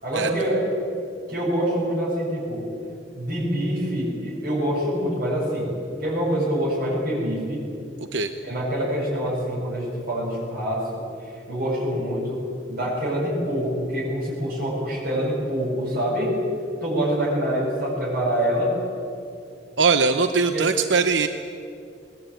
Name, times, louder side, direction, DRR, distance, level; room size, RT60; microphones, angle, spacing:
voice 1, 0.0-0.6 1.3-2.7 3.2-5.7 6.0-7.6 8.4-11.0 11.5-12.4 12.7-16.4 16.8-18.7 20.5-20.7, equal, 60° right, -7 dB, 7.2 m, -25 dB
voice 2, 19.8-21.3, right 4 dB, 80° right, 8 dB, 0.9 m, -20 dB
21.0 x 20.5 x 9.2 m, 2.6 s
head